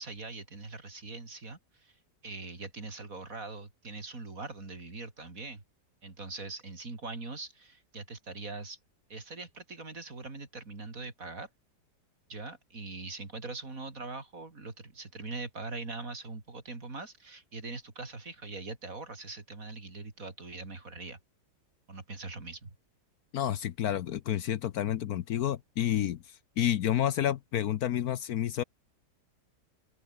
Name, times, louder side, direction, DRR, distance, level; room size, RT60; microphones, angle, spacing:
voice 1, 0.0-2.0 2.2-5.6 6.0-8.8 9.1-11.5 12.3-21.2 21.9-22.8, right 3 dB, 50° right, 4.1 m, -42 dB
voice 2, 23.3-28.6, left 11 dB, 65° left, 1.2 m, -30 dB
open air
omnidirectional pair, 1.8 m